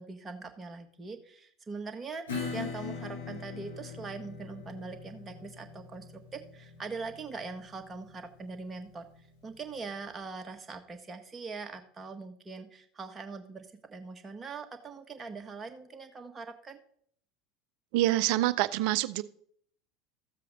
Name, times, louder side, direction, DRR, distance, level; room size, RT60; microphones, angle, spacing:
voice 1, 0.0-9.0 9.4-16.8, right 4 dB, 20° right, 1.4 m, -42 dB
Acoustic guitar / Strum, 2.3-9.5, left 5 dB, 75° left, 2.4 m, -42 dB
voice 2, 17.9-19.2, right 16 dB, 55° right, 0.5 m, -26 dB
14.0 x 7.4 x 4.0 m
figure-of-eight pair, 75°, 0 cm